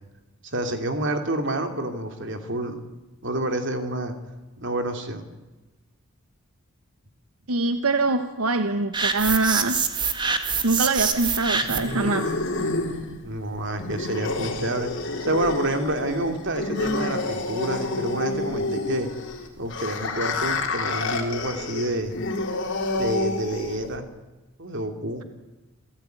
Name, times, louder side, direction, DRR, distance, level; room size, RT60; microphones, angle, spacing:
voice 1, 0.4-2.8 3.2-4.1 4.6-5.3 13.2-14.9 15.2-19.1 19.6-22.2 23.0-24.1 24.6-25.2, right 1 dB, 55° right, 7 dB, 2.7 m, -28 dB
voice 2, 7.5-9.8 10.6-12.3, right 3 dB, 80° right, 9 dB, 1.2 m, -23 dB
sound 1, 8.9-12.0, right 5 dB, 20° right, 1.6 m, -25 dB
sound 2, 11.0-24.0, left 2 dB, 55° left, 4.0 m, -29 dB
27.5 x 16.5 x 9.3 m, 1.1 s
head